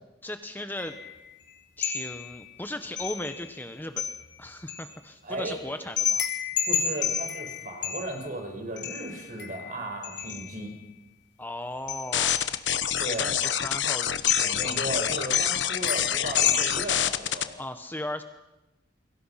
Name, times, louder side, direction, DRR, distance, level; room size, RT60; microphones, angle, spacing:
voice 1, 0.2-1.0 1.8-4.1 4.4-6.3 11.4-12.5 13.1-14.6 17.6-18.2, left 1 dB, 10° left, 8 dB, 1.1 m, -37 dB
sound 1, 0.8-1.3 1.8-2.5 3.0-3.6 4.0-4.9 6.0-8.3 8.8-10.6 11.9-12.6 13.0-13.9 14.3-15.1 15.3-16.8, left 8 dB, 65° left, 3.9 m, -30 dB
voice 2, 5.2-5.6 6.7-10.7 13.0-13.3 14.4-17.6, right 1 dB, 45° right, 3 dB, 5.7 m, -35 dB
sound 2, 12.1-17.4, left 10 dB, 80° left, 1.1 m, -27 dB
29.0 x 23.0 x 5.8 m, 0.98 s
head